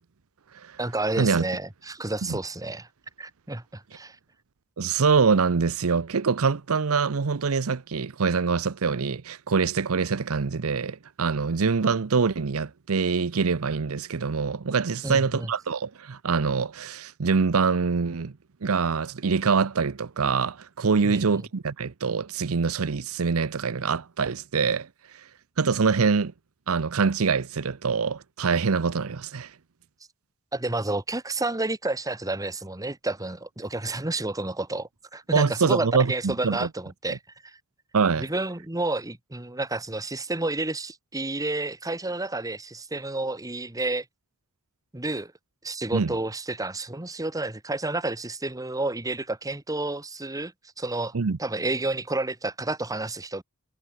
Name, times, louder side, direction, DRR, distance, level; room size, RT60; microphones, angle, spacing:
voice 1, 0.8-2.9 3.2-4.2 15.0-15.5 21.0-21.4 30.5-37.6 38.2-44.0 44.9-45.3 45.6-53.4, right 2 dB, 15° right, 1.4 m, -30 dB
voice 2, 4.8-18.3 18.6-24.9 25.6-26.3 26.7-29.5 35.3-36.7 37.1-37.2 37.9-38.3 45.9-46.1 51.1-51.4, right 5 dB, 80° right, 0.7 m, -24 dB
head